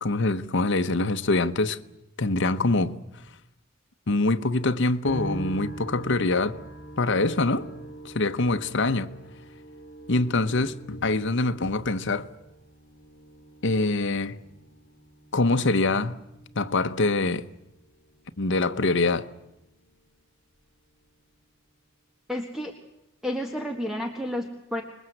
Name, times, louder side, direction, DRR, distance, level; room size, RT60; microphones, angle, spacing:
voice 1, 0.0-1.8 2.2-2.9 4.1-6.6 7.0-7.7 8.0-9.1 10.1-12.3 13.6-14.4 15.3-16.2 16.5-17.4 18.4-19.3, left 2 dB, 60° left, 1.0 m, -24 dB
sound 1, 5.0-20.3 20.6-21.4, right 1 dB, 40° left, 2.9 m, -44 dB
voice 2, 22.3-22.7 23.2-24.8, left 1 dB, ahead, 1.7 m, -31 dB
26.5 x 21.5 x 8.0 m
head